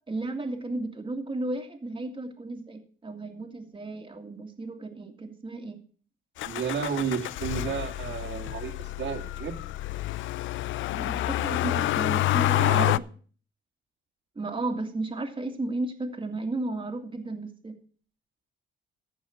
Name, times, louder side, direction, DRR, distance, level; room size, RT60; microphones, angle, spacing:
voice 1, 0.1-5.8 10.9-13.0 14.4-17.8, right 2 dB, 25° right, 3 dB, 2.1 m, -34 dB
Motor vehicle (road), 6.4-13.0, left 16 dB, 75° left, 0.4 m, -28 dB
voice 2, 6.4-9.6 12.5-13.0, right 7 dB, 70° right, 3 dB, 2.1 m, -32 dB
14.5 x 5.4 x 7.0 m, 0.43 s
cardioid pair, 90°, 20 cm